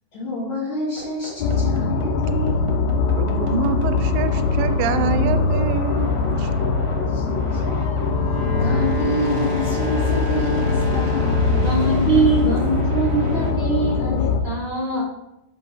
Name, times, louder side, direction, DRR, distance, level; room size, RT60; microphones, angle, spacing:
voice 1, 0.1-2.7 7.1-7.6 8.5-11.7, left 1 dB, 60° left, -7 dB, 2.6 m, -28 dB
sound 1, 1.0-13.5, right 3 dB, 65° right, 1.6 m, -36 dB
sound 2, 1.4-14.4, left 4 dB, 80° left, 2.3 m, -22 dB
voice 2, 3.2-6.5, right 6 dB, 80° right, 9 dB, 2.3 m, -26 dB
Wind instrument woodwind instrument, 8.0-12.1, left 1 dB, 40° right, 1.5 m, -31 dB
voice 3, 11.6-14.2 14.4-15.0, right 3 dB, 15° left, -6 dB, 1.7 m, -22 dB
5.7 x 5.7 x 4.0 m, 0.85 s
omnidirectional pair, 4.2 m